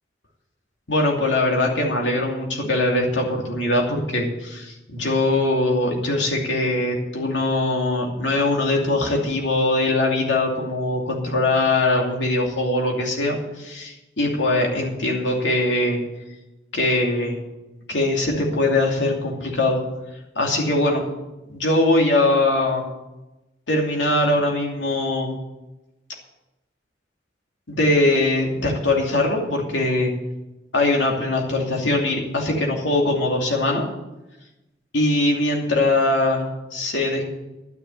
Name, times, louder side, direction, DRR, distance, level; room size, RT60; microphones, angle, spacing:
voice 1, 0.9-16.0 16.7-17.3 17.9-19.8 20.3-21.0 21.5-22.8 23.7-25.3 27.7-30.1 30.7-33.8 34.9-36.4 36.7-37.3, left 2 dB, 85° left, 0 dB, 2.7 m, -21 dB
12.0 x 6.6 x 9.4 m, 1.0 s
head